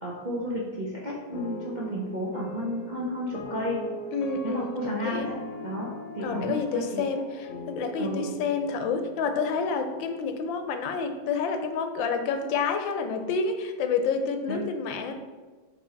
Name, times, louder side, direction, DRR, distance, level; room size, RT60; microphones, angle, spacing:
voice 1, 0.0-3.8 4.4-5.4 5.6-7.0 8.0-8.3 14.5-14.6, equal, 40° right, -5 dB, 0.6 m, -32 dB
sound 1, 1.3-10.5, left 1 dB, 60° left, 0.8 m, -40 dB
voice 2, 4.1-4.7 5.1-5.3 6.2-15.1, left 5 dB, 80° left, 7 dB, 1.4 m, -29 dB
5.3 x 4.3 x 4.4 m, 1.4 s
omnidirectional pair, 2.1 m